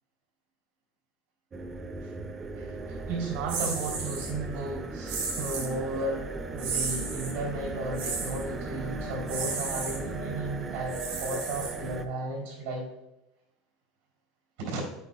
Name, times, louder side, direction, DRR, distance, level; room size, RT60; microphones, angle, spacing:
sound 1, 1.5-12.0, right 2 dB, 20° right, 0.4 m, -37 dB
voice 1, 2.6-12.9 14.6-14.8, right 2 dB, 85° right, -1 dB, 3.1 m, -34 dB
sound 2, 3.5-4.3 5.1-5.7 6.6-7.4 7.9-8.4 9.3-10.0 10.9-12.0, right 5 dB, 70° right, 2.9 m, -34 dB
11.0 x 8.2 x 2.3 m, 0.91 s
supercardioid pair, 165°, 0 cm